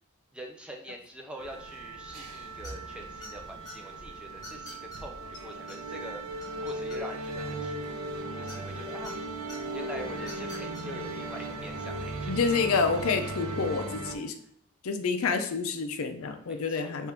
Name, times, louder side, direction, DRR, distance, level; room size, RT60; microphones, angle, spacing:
voice 1, 0.3-5.2 5.4-7.9 8.4-9.1 9.7-12.4 13.1-13.3 16.4-17.1, equal, 5° right, 1 dB, 0.4 m, -44 dB
sound 1, 1.4-14.2, right 2 dB, 75° right, 0.6 m, -37 dB
sound 2, 2.6-2.9 3.2-3.7 4.4-5.0 5.3-5.4 5.7-5.8 6.1-7.3 8.5-9.1 9.5-9.6 10.2-10.8, left 1 dB, 15° left, 1.3 m, -45 dB
voice 2, 12.3-14.3 14.8-17.1, left 5 dB, 70° left, 7 dB, 0.5 m, -28 dB
3.5 x 2.5 x 4.3 m, 0.67 s
head